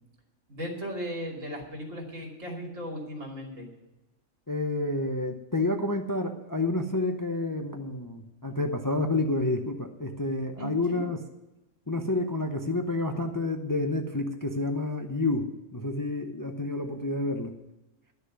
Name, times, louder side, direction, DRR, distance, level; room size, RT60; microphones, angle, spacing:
voice 1, 0.5-3.7 10.6-11.0, equal, 75° right, 0 dB, 3.2 m, -37 dB
voice 2, 4.5-11.2 11.9-17.5, left 2 dB, 20° left, 4 dB, 0.7 m, -29 dB
11.5 x 6.8 x 9.4 m, 1.0 s
omnidirectional pair, 1.3 m